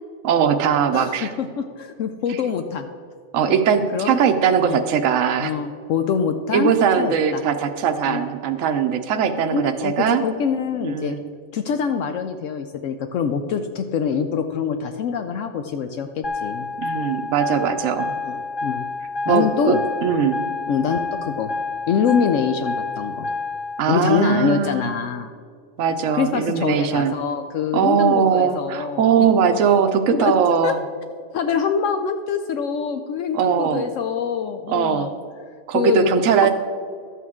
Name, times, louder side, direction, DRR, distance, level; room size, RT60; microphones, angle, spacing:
voice 1, 0.2-1.3 2.3-2.4 3.3-5.5 6.5-10.2 10.8-11.3 16.8-18.1 19.3-20.5 23.8-24.9 25.8-27.1 27.7-30.8 33.3-33.8 34.7-35.1 35.7-36.5, right 7 dB, 75° right, 6 dB, 1.0 m, -20 dB
voice 2, 0.9-2.9 3.9-4.2 4.6-4.8 5.4-7.4 8.1-8.2 9.5-9.9 10.2-11.2 11.5-16.7 18.2-18.8 19.3-19.8 20.7-21.5 21.9-23.3 23.9-25.3 26.1-29.1 30.1-30.3 30.6-30.7 31.3-35.2 35.7-36.5, left 6 dB, 75° left, 7 dB, 0.9 m, -24 dB
sound 1, 16.2-23.8, left 3 dB, 35° left, 0.4 m, -29 dB
12.5 x 8.4 x 3.6 m, 2.2 s
omnidirectional pair, 1.4 m